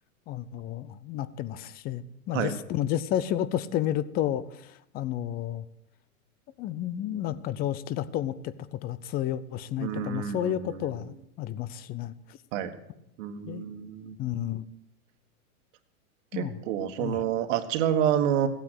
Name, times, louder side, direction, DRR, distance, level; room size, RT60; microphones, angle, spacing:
voice 1, 0.3-5.6 6.6-12.4 13.5-13.6 14.2-14.6 16.3-16.6 17.0-17.2, left 11 dB, 20° left, 17 dB, 0.5 m, -31 dB
voice 2, 9.8-10.8 12.5-12.7 13.2-14.2 16.3-18.5, right 10 dB, 55° right, 8 dB, 1.6 m, -28 dB
15.5 x 9.2 x 8.0 m, 0.82 s
hypercardioid pair, 135°, 44 cm